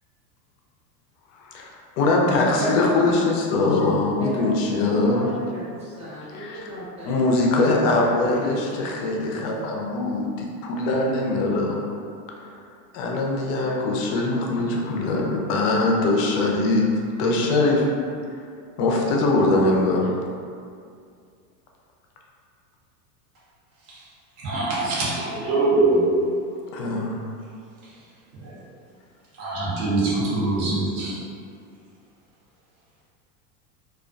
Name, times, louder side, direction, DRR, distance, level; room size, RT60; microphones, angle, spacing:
voice 1, 1.4-1.7 2.0-5.3 6.3-6.7 7.0-11.9 12.4-12.6 12.9-16.9 17.2-17.9 18.8-20.1 26.7-27.2, left 2 dB, 50° left, -1 dB, 0.5 m, -22 dB
voice 2, 2.4-2.8 4.2-8.6, right 1 dB, 15° right, -8 dB, 0.6 m, -34 dB
voice 3, 24.4-26.2 28.4-28.6 29.4-31.1, right 2 dB, 60° right, -9 dB, 0.9 m, -23 dB
2.4 x 2.2 x 2.4 m, 2.3 s
supercardioid pair, 120°, 48 cm